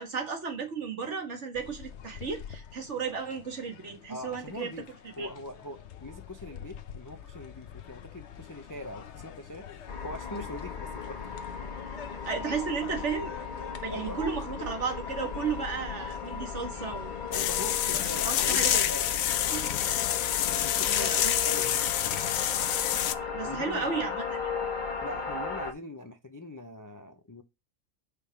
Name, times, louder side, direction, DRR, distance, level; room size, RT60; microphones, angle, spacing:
voice 1, 0.0-4.7 5.0-5.3 12.3-13.3 13.8-17.1 17.9-18.9 19.4-19.7 21.0-21.3 23.2-24.6, right 5 dB, 60° right, 1.7 m, -34 dB
sound 1, 1.5-18.5, left 8 dB, 60° left, 1.0 m, -46 dB
voice 2, 4.1-4.9 5.2-9.6 10.0-11.4 13.9-14.3 17.3-19.1 20.5-21.9 23.4-24.0 25.0-27.4, left 1 dB, 20° left, 0.5 m, -42 dB
sound 2, 9.9-25.7, left 5 dB, 35° left, 1.4 m, -36 dB
sound 3, 17.3-23.1, left 11 dB, 85° left, 1.0 m, -27 dB
5.1 x 5.1 x 5.7 m
omnidirectional pair, 1.4 m